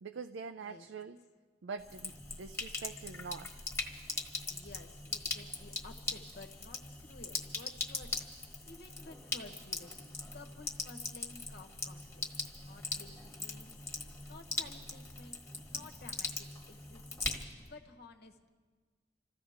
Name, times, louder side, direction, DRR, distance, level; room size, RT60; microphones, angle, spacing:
voice 1, 0.0-1.2 1.6-3.6, right 5 dB, 70° right, 7 dB, 0.5 m, -44 dB
Sink (filling or washing), 1.8-17.7, left 3 dB, 15° left, 1.5 m, -41 dB
voice 2, 4.5-8.1 8.4-9.9 10.3-13.9 14.3-16.3 16.7-17.0 17.6-18.5, left 3 dB, 60° left, 5 dB, 1.3 m, -54 dB
27.0 x 15.0 x 3.6 m, 1.5 s
head